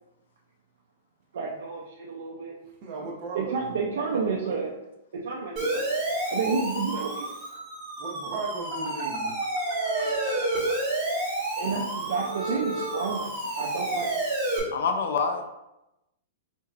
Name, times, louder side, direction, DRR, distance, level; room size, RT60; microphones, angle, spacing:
voice 1, 1.3-2.5 3.0-3.1 3.3-4.7 5.1-5.8 6.2-7.3 11.6-13.3 13.6-14.1, right 5 dB, 75° right, -3 dB, 0.5 m, -30 dB
voice 2, 2.8-3.8 8.0-9.4, right 3 dB, 35° right, -1 dB, 0.8 m, -36 dB
Siren, 5.6-14.6, right 2 dB, 15° right, 1.5 m, -30 dB
voice 3, 14.7-15.5, left 5 dB, 70° left, 6 dB, 0.5 m, -26 dB
4.2 x 2.8 x 2.4 m, 0.91 s
hypercardioid pair, 165°, 0 cm